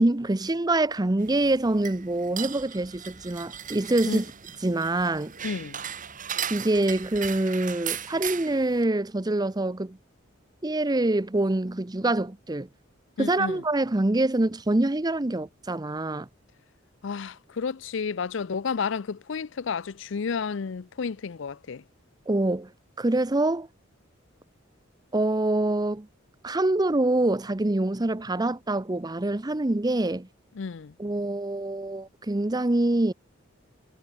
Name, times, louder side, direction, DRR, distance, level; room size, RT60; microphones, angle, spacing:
voice 1, 0.0-4.3 4.6-5.3 6.5-10.0 10.6-12.7 13.2-16.3 22.3-22.7 23.0-23.7 25.1-26.1 26.4-30.3 31.0-33.1, right 2 dB, 20° right, 0.7 m, -25 dB
sound 1, 1.2-8.8, right 9 dB, 40° right, 4.0 m, -37 dB
voice 2, 5.4-5.8 13.2-13.6 17.0-21.8 30.5-30.9, left 5 dB, 65° left, 0.5 m, -31 dB
head